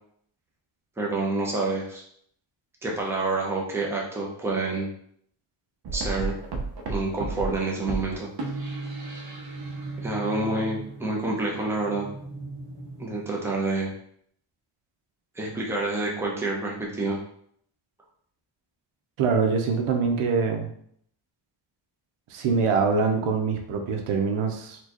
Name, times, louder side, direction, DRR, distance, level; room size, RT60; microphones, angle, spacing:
voice 1, 1.0-2.0 2.8-4.9 5.9-6.4 6.9-8.3 10.0-12.1 13.0-13.9 15.3-17.2, right 2 dB, 5° right, -3 dB, 0.6 m, -28 dB
sound 1, 5.8-13.6, right 3 dB, 50° right, 0.7 m, -35 dB
voice 2, 19.2-20.7 22.3-24.8, right 5 dB, 90° right, 3 dB, 0.8 m, -24 dB
4.3 x 2.4 x 2.9 m, 0.67 s
cardioid pair, 155°, 49 cm